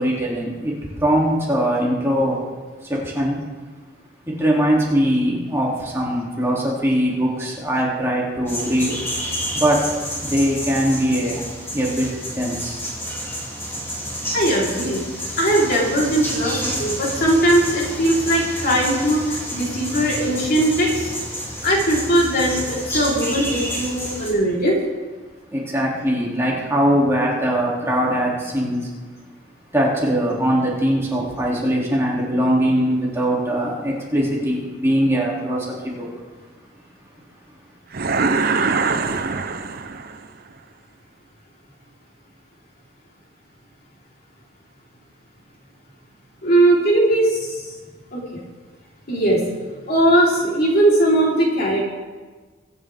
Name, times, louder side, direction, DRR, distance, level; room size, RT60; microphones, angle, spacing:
voice 1, 0.0-2.4 2.8-3.4 4.3-9.0 9.5-12.8 25.5-28.9 29.7-36.1, equal, 15° right, -4 dB, 2.7 m, -21 dB
sound 1, 8.5-24.3, equal, 15° left, 2.8 m, -29 dB
voice 2, 14.3-15.0 15.4-21.1 21.6-24.8 46.4-47.7 48.1-48.2 49.1-49.4 49.9-51.8, right 1 dB, 55° left, -4 dB, 3.8 m, -19 dB
sound 2, 37.9-40.3, right 4 dB, 55° right, 0.7 m, -22 dB
23.5 x 9.3 x 3.5 m, 1.4 s
head